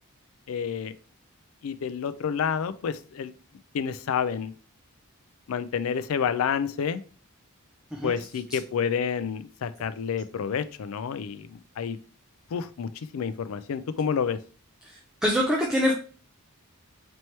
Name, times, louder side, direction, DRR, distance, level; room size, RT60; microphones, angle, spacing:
voice 1, 0.5-0.9 1.6-3.3 3.7-4.5 5.5-7.0 8.0-12.0 12.5-14.4, left 7 dB, 65° left, 12 dB, 0.4 m, -29 dB
voice 2, 14.8-15.9, equal, 5° right, -2 dB, 0.5 m, -25 dB
4.3 x 3.0 x 3.2 m, 0.39 s
head